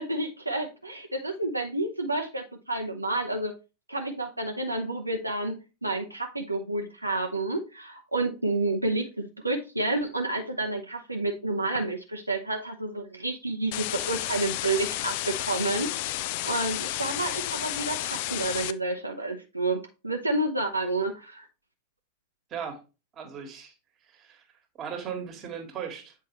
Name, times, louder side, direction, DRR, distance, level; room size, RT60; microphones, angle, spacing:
voice 1, 0.0-3.5 3.9-15.9 16.4-21.5, right 2 dB, 85° right, 0.7 m, -30 dB
sound 1, 13.7-18.7, left 15 dB, 50° left, 0.3 m, -32 dB
voice 2, 23.1-23.7 24.1-24.4 24.8-26.1, right 7 dB, 30° right, 1.6 m, -37 dB
7.8 x 4.6 x 3.0 m
figure-of-eight pair, 90°, 0 cm